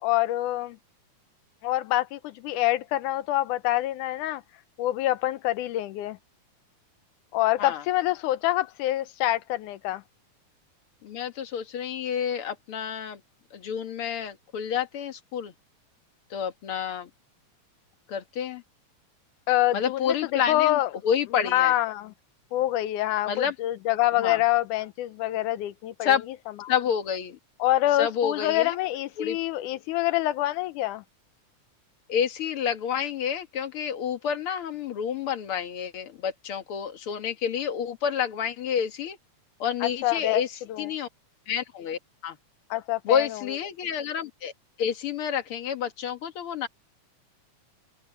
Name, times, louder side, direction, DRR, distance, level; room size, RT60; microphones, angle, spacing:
voice 1, 0.0-0.8 1.6-4.4 4.8-6.2 7.3-10.0 19.5-20.9 21.5-22.1 22.5-26.2 27.6-31.0 39.8-40.4 40.7-40.9 42.7-43.4, left 15 dB, 85° left, 2.2 m, -26 dB
voice 2, 11.0-13.2 13.5-15.5 16.3-17.1 18.1-18.6 19.7-21.7 23.3-23.5 24.2-24.4 26.0-26.2 26.7-27.4 28.0-28.8 29.2-29.4 32.1-39.2 39.6-40.5 40.8-41.1 41.5-42.4 43.1-44.5 44.8-46.7, left 8 dB, 50° left, 2.0 m, -29 dB
open air
omnidirectional pair, 3.6 m